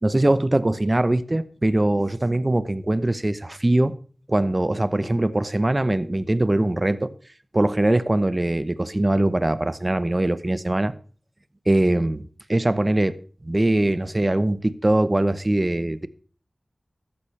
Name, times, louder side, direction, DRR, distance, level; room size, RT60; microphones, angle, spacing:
voice 1, 0.0-3.9 4.3-7.1 7.5-10.9 11.7-12.2 12.5-13.2 13.4-16.1, right 1 dB, 30° right, 0.9 m, -22 dB
14.5 x 13.0 x 3.3 m
wide cardioid pair, 65°, 0 cm